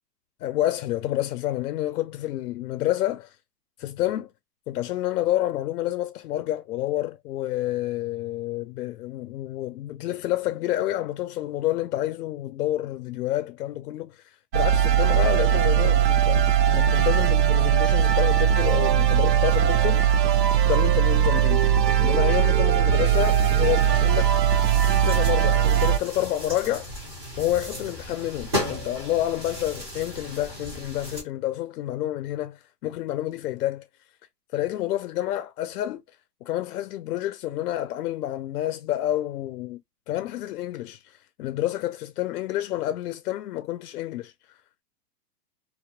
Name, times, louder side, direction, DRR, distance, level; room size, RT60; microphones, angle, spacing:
voice 1, 0.4-3.3 3.8-4.3 4.7-14.1 14.5-20.0 20.6-21.6 22.0-24.3 24.8-26.9 27.4-33.8 34.5-36.0 36.5-39.8 40.1-41.0 41.4-44.3, left 14 dB, 70° left, 0.5 m, -28 dB
sound 1, 14.5-26.0, right 10 dB, 90° right, 0.6 m, -20 dB
sound 2, 23.0-31.2, equal, 20° right, 0.3 m, -36 dB
2.2 x 2.1 x 2.8 m
hypercardioid pair, 140°, 48 cm